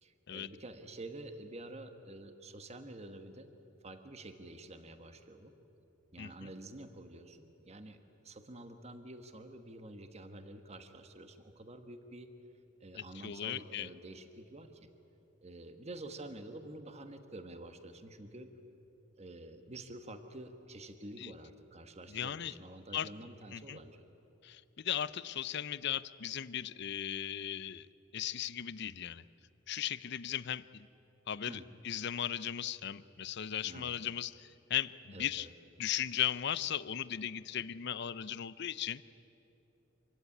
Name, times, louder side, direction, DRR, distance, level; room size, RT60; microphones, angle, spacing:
voice 1, 0.0-3.5 3.8-5.5 6.1-12.3 12.8-14.9 15.4-18.5 19.2-24.0 31.5-31.7 33.6-33.9 35.1-35.5, right 1 dB, 35° right, 8 dB, 1.4 m, -49 dB
voice 2, 6.2-6.5 12.9-13.9 21.2-21.3 22.1-22.5 22.9-23.1 23.5-23.8 24.4-27.9 28.1-29.2 29.7-30.9 31.3-35.5 35.8-39.0, left 10 dB, 60° left, 17 dB, 0.6 m, -37 dB
26.0 x 16.0 x 9.7 m, 2.9 s
head